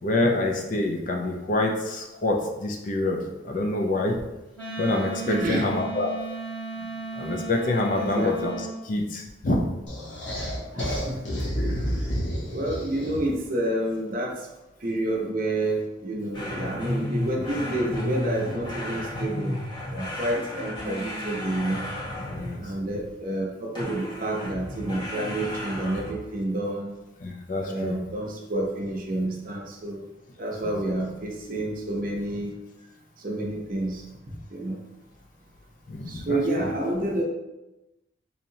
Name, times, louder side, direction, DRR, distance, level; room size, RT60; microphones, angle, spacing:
voice 1, 0.0-4.2 4.8-6.1 7.1-8.5 8.8-9.6 22.3-22.6 27.2-28.0 30.6-30.7 35.9-36.7, left 2 dB, 45° left, 2 dB, 0.5 m, -26 dB
Wind instrument woodwind instrument, 4.6-8.7, right 3 dB, 10° left, 1.1 m, -35 dB
voice 2, 5.2-5.7 7.9-8.3 10.7-11.4 12.5-14.4 14.8-19.6 19.9-21.8 22.6-26.9 27.6-30.0 30.4-32.5 33.2-34.0 34.5-34.8 36.1-37.3, right 1 dB, 50° right, -1 dB, 0.7 m, -29 dB
sound 1, 9.9-13.4, equal, 80° left, 1.0 m, -30 dB
sound 2, 16.3-22.8 23.8-26.3, left 1 dB, 25° left, 0.9 m, -33 dB
4.2 x 2.8 x 2.7 m, 1.0 s
head